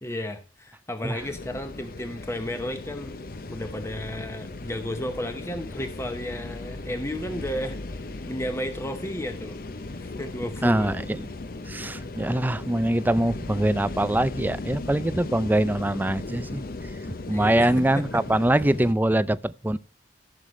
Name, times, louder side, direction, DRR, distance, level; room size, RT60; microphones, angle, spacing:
voice 1, 0.0-3.2 3.5-9.6 9.9-10.9 17.3-18.0, equal, 15° left, 0.8 m, -33 dB
sound 1, 1.2-18.9, left 2 dB, 55° left, 0.7 m, -37 dB
voice 2, 10.6-11.3 11.7-19.8, right 1 dB, 10° right, 0.4 m, -24 dB
15.0 x 6.6 x 3.1 m
head